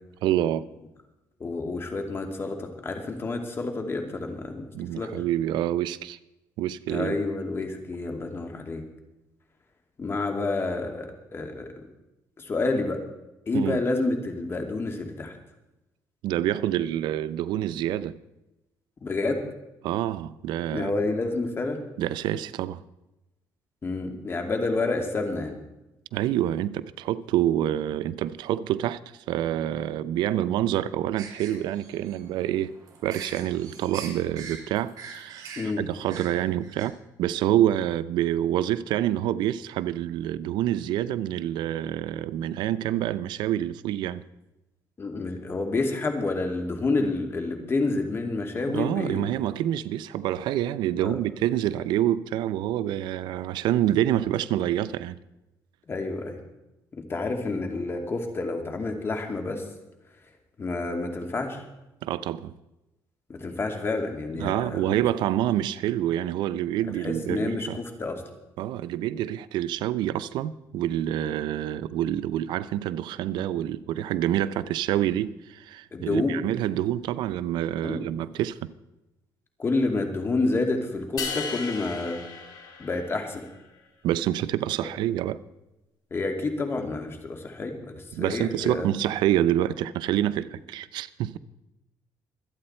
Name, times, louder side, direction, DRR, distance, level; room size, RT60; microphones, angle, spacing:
voice 1, 0.2-0.6 4.7-6.2 6.6-7.2 13.5-13.8 16.2-18.1 19.8-20.9 22.0-22.8 26.1-29.0 29.3-32.7 33.0-35.5 35.8-44.2 48.7-55.2 62.0-62.5 64.4-67.8 68.6-78.7 84.0-85.4 88.1-91.4, right 12 dB, 85° right, 0.6 m, -27 dB
voice 2, 1.4-5.1 6.9-8.8 10.0-11.7 12.4-13.0 13.5-15.4 19.0-19.5 20.7-21.8 23.8-25.6 35.6-35.8 45.0-49.3 51.0-51.2 55.9-56.4 56.9-59.6 60.6-61.6 63.3-65.0 67.0-68.2 75.9-76.4 77.8-78.1 79.6-82.2 82.8-83.4 86.1-88.9, left 3 dB, 30° left, 2.5 m, -29 dB
sound 1, 31.1-36.8, right 6 dB, 55° right, 4.7 m, -43 dB
sound 2, 81.2-83.5, left 5 dB, 55° left, 3.0 m, -35 dB
25.0 x 8.8 x 4.4 m
cardioid pair, 115°, 8 cm